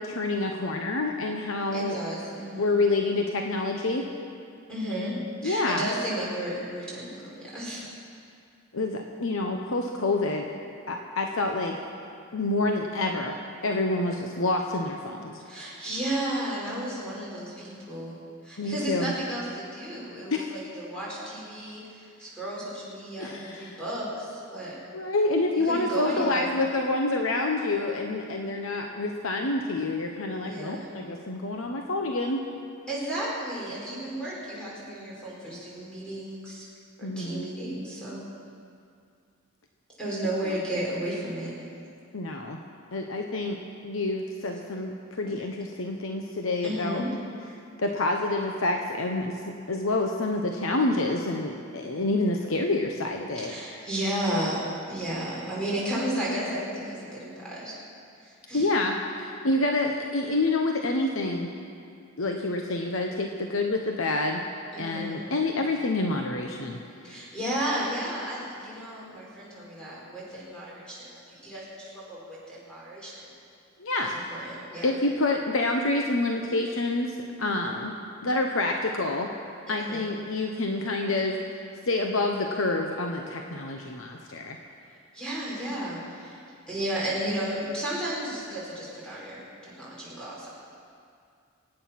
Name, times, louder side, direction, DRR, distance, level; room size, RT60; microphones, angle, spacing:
voice 1, 0.0-2.0 2.6-4.0 5.4-5.9 8.7-10.5 10.9-11.8 12.3-13.4 13.6-15.4 18.6-19.1 20.3-20.5 23.2-23.8 24.9-32.4 37.0-37.5 40.4-40.6 42.1-42.6 42.9-43.6 43.8-47.0 47.5-53.5 58.5-61.5 62.2-64.4 64.8-66.8 67.1-67.2 73.8-74.2 74.8-77.9 78.2-79.3 79.7-81.4 81.9-84.6, left 2 dB, 75° left, 2 dB, 1.0 m, -28 dB
voice 2, 1.7-2.7 4.7-7.9 15.4-18.2 18.4-24.8 25.5-26.5 30.4-30.9 32.9-36.7 37.0-38.2 40.0-41.5 46.6-47.1 53.4-57.8 58.2-58.7 64.7-65.2 67.0-73.1 74.3-74.9 79.7-80.1 85.1-86.4 86.7-90.5, right 1 dB, 5° left, -7 dB, 5.2 m, -33 dB
24.5 x 9.3 x 5.9 m, 2.4 s
head